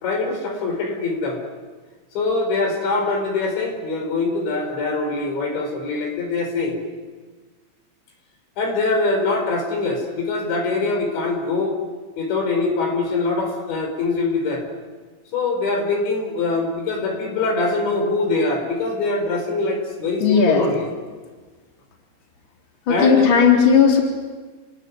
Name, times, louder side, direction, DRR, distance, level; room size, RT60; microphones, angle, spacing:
voice 1, 0.0-1.4 2.1-6.8 8.6-11.7 12.2-14.6 15.3-20.9 22.9-23.3, left 3 dB, 70° left, 4 dB, 6.8 m, -23 dB
voice 2, 20.2-20.6 22.9-24.0, left 6 dB, 25° left, 0 dB, 3.8 m, -15 dB
29.0 x 19.5 x 9.8 m, 1.4 s
omnidirectional pair, 5.4 m